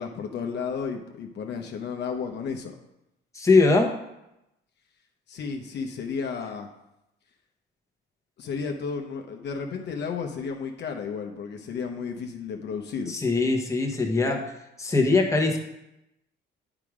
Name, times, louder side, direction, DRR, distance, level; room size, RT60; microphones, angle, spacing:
voice 1, 0.0-2.7 5.3-6.7 8.4-13.1, left 5 dB, 60° left, 3 dB, 0.9 m, -33 dB
voice 2, 3.3-3.9 13.1-14.4 14.8-15.6, left 3 dB, 15° left, 1 dB, 1.2 m, -21 dB
9.0 x 4.9 x 4.9 m, 0.88 s
cardioid pair, 115°, 20 cm